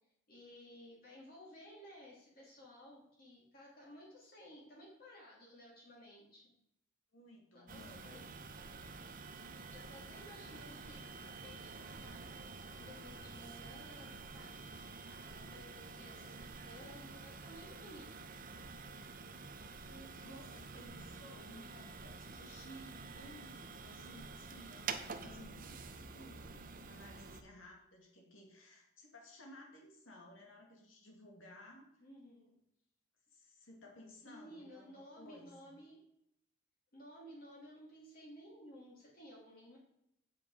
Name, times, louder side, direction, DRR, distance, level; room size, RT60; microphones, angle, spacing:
voice 1, 0.3-6.5 7.5-8.2 9.7-12.4 12.7-14.6 15.0-18.1 18.5-18.6 32.0-32.5 34.2-36.0 36.9-39.8, equal, 45° left, -4 dB, 2.8 m, -56 dB
voice 2, 7.1-8.3 19.9-31.9 33.3-35.5, left 1 dB, 75° left, 0 dB, 2.3 m, -56 dB
sound 1, 7.7-27.4, right 4 dB, 45° right, 0.8 m, -49 dB
9.3 x 7.5 x 4.9 m, 0.78 s
head